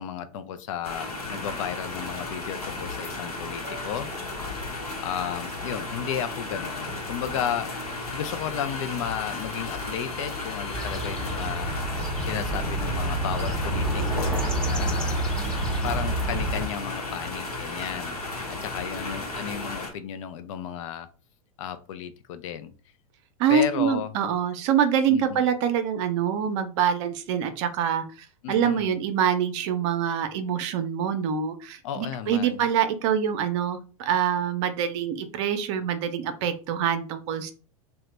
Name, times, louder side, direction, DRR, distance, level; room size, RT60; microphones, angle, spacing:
voice 1, 0.0-4.1 5.0-7.7 8.1-11.7 12.0-14.3 14.6-15.3 15.8-21.1 21.6-22.7 23.5-24.1 25.1-25.4 28.4-29.0 31.8-32.6, left 9 dB, 60° left, 11 dB, 0.5 m, -33 dB
sound 1, 0.8-19.9, left 2 dB, 90° left, 1.0 m, -34 dB
Bowed string instrument, 6.6-11.6, left 7 dB, 35° left, 1.2 m, -48 dB
sound 2, 10.7-16.7, right 2 dB, 5° left, 0.7 m, -28 dB
voice 2, 23.4-37.5, right 8 dB, 50° right, 9 dB, 0.6 m, -25 dB
2.7 x 2.2 x 3.2 m, 0.36 s
hypercardioid pair, 95°, 19 cm